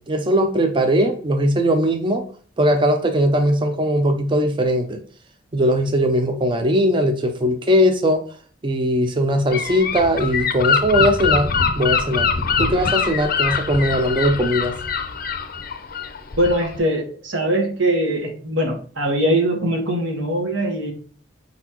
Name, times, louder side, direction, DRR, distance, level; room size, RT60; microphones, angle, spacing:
voice 1, 0.1-2.2 2.6-5.0 5.5-8.2 8.6-11.5 11.8-12.3 12.6-14.8, equal, 25° right, 6 dB, 0.4 m, -19 dB
Gull seagull / Wind, 9.5-16.8, left 5 dB, 55° left, 0.5 m, -23 dB
voice 2, 16.4-20.9, right 1 dB, 85° right, 2 dB, 1.3 m, -21 dB
4.4 x 4.0 x 2.9 m, 0.42 s
head